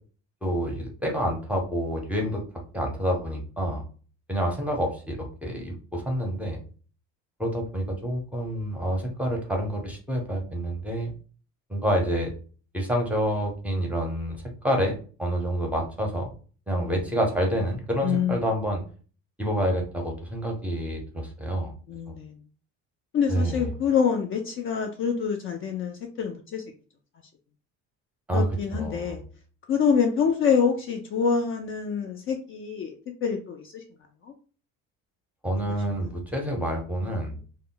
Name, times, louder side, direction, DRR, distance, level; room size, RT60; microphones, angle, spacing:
voice 1, 0.4-2.4 2.7-3.8 4.3-6.6 7.4-11.1 11.7-12.3 12.7-14.4 14.6-14.9 15.2-16.3 16.7-18.8 19.4-21.7 23.3-23.6 28.3-28.5 28.7-29.1 35.4-37.3, equal, 5° right, 0.6 m, -28 dB
voice 2, 16.8-17.2 18.0-18.4 21.9-22.3 23.1-26.6 28.3-29.2 29.7-32.9 33.2-33.8 34.2-34.3, left 6 dB, 40° left, 0.4 m, -26 dB
2.1 x 2.1 x 3.7 m
cardioid pair, 135°, 33 cm